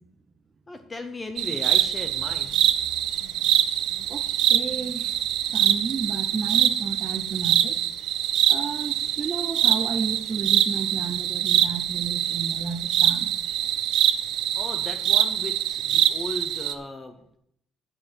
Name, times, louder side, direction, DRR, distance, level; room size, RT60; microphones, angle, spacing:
voice 1, 0.7-2.6 14.6-17.2, left 2 dB, 15° left, 6 dB, 0.7 m, -36 dB
sound 1, 1.4-16.7, right 11 dB, 75° right, 0.7 m, -24 dB
voice 2, 4.5-5.1 5.5-7.8 8.5-13.3, right 5 dB, 30° right, 6 dB, 0.7 m, -32 dB
8.8 x 7.0 x 6.1 m, 0.73 s
cardioid pair, 165°, 0 cm